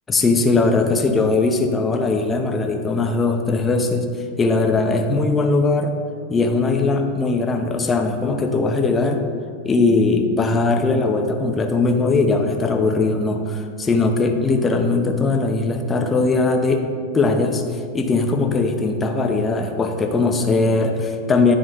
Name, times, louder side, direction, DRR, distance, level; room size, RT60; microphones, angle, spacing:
voice 1, 0.1-4.1 4.4-5.9 6.3-9.2 9.6-16.8 17.1-17.6 17.9-21.6, left 3 dB, 15° left, 4 dB, 0.7 m, -19 dB
9.8 x 3.8 x 4.1 m, 2.2 s
supercardioid pair, 130°, 0 cm